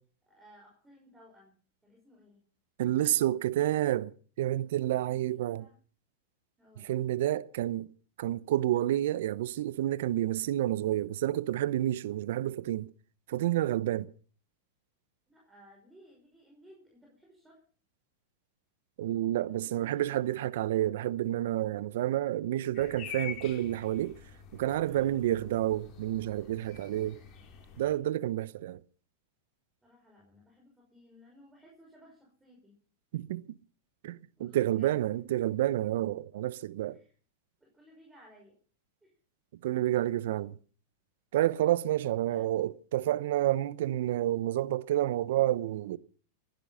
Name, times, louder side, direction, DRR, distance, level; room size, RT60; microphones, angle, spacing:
voice 1, 0.3-1.5 1.8-2.4 3.0-3.3 4.9-5.8 6.6-6.9 15.3-17.6 19.5-20.3 29.8-32.7 34.4-35.0 36.9-37.2 37.6-38.6 39.0-39.1 42.3-42.5, equal, 10° right, 5.6 m, -59 dB
voice 2, 2.8-5.6 6.8-7.9 8.2-12.9 13.3-14.1 19.0-24.2 24.5-27.2 27.8-28.8 33.1-33.5 34.0-37.0 39.6-40.6 41.3-46.0, right 13 dB, 70° right, 0.8 m, -29 dB
sound 1, 22.7-27.9, left 8 dB, 40° left, 5.0 m, -46 dB
21.0 x 11.5 x 5.7 m
hypercardioid pair, 110°, 0 cm